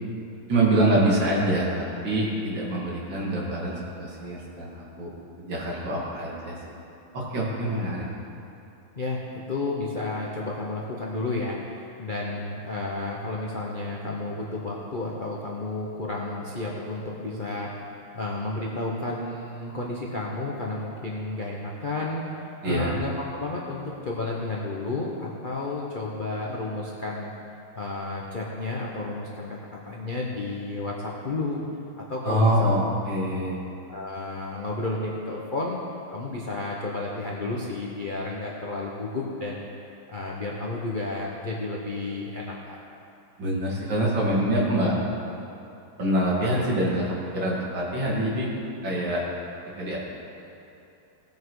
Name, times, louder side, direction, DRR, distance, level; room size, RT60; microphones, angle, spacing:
voice 1, 0.5-4.7 5.0-5.1 5.4-6.6 7.1-8.0 22.6-22.9 32.2-33.6 43.4-44.9 46.0-48.5 48.8-49.2 49.8-50.0, right 1 dB, 60° right, -5 dB, 2.8 m, -25 dB
voice 2, 7.7-8.1 8.9-22.2 22.6-27.3 27.7-31.6 32.0-32.8 33.9-35.8 36.1-39.7 40.1-42.8, left 2 dB, 40° left, -4 dB, 0.7 m, -32 dB
18.0 x 7.3 x 4.8 m, 2.8 s
omnidirectional pair, 2.3 m